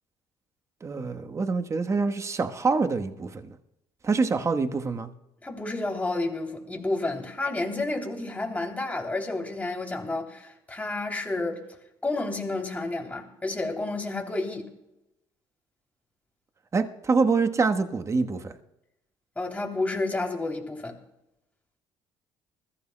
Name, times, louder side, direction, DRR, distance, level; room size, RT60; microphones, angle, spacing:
voice 1, 0.8-3.6 4.0-5.1 16.7-18.6, right 4 dB, 30° right, 1.2 m, -25 dB
voice 2, 5.4-11.6 12.0-14.7 19.4-21.0, left 2 dB, 15° left, 3.0 m, -30 dB
21.0 x 14.5 x 2.2 m
supercardioid pair, 85°, 10 cm